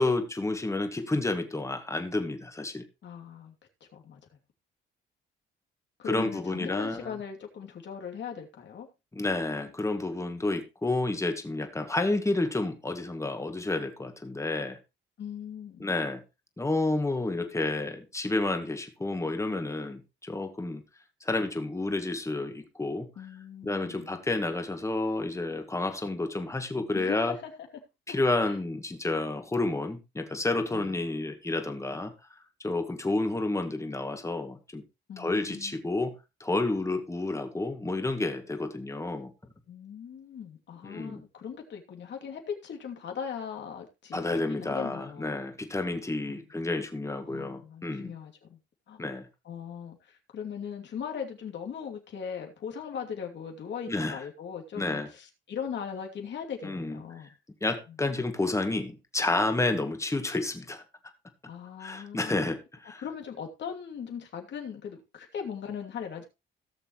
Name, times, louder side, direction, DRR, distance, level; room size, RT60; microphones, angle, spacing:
voice 1, 0.0-2.8 6.1-7.2 9.1-14.8 15.8-16.2 16.6-20.8 21.2-23.1 23.6-27.4 28.1-32.1 32.6-34.8 35.2-36.2 36.4-39.3 40.8-41.2 44.1-48.1 49.0-49.3 53.9-54.2 54.8-55.1 56.6-57.0 57.6-60.8 61.8-63.0, left 2 dB, 15° left, 2.1 m, -30 dB
voice 2, 3.0-3.5 3.9-4.2 6.0-8.9 15.2-15.9 23.2-24.1 26.9-27.5 28.1-28.2 28.4-28.5 30.7-30.9 35.1-35.8 39.7-45.4 46.3-46.4 47.2-48.6 48.9-49.0 49.4-57.3 61.5-62.5 63.0-66.2, left 7 dB, 65° left, 2.8 m, -39 dB
17.5 x 6.8 x 3.1 m
cardioid pair, 90°, 20 cm